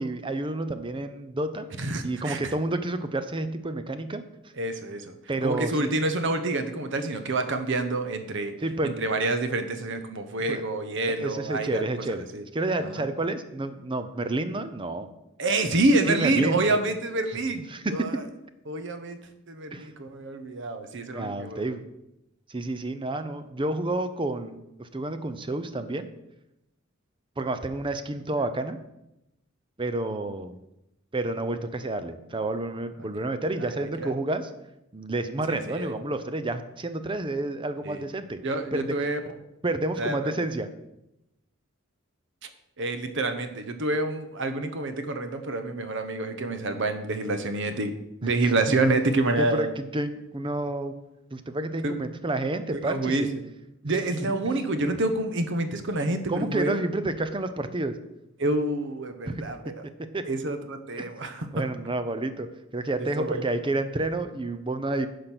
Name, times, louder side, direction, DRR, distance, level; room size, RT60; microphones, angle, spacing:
voice 1, 0.0-1.7 2.0-4.2 5.3-5.9 8.6-9.0 10.5-10.6 11.0-12.2 12.5-15.1 16.1-16.8 17.7-18.2 19.7-19.9 21.1-21.8 22.5-26.1 27.4-28.8 29.8-30.6 31.1-34.5 34.9-38.4 38.7-38.9 39.6-40.7 48.2-48.3 48.7-48.8 49.4-50.9 51.3-53.3 56.3-58.0 59.2-59.4 60.1-60.2 61.0-61.1 61.5-62.5 62.7-65.1, right 2 dB, 25° right, 10 dB, 0.6 m, -29 dB
voice 2, 1.8-2.5 4.6-5.2 5.4-8.5 8.8-12.4 12.8-13.0 15.4-18.2 18.7-19.2 19.5-21.7 33.0-34.1 35.5-35.9 37.8-38.0 38.4-39.2 40.0-40.3 42.8-47.9 48.2-49.7 51.8-52.0 52.7-53.4 53.8-56.8 58.4-59.7 60.3-61.6 63.0-63.4, right 2 dB, 60° right, 8 dB, 1.0 m, -28 dB
10.0 x 5.2 x 6.0 m, 0.89 s
head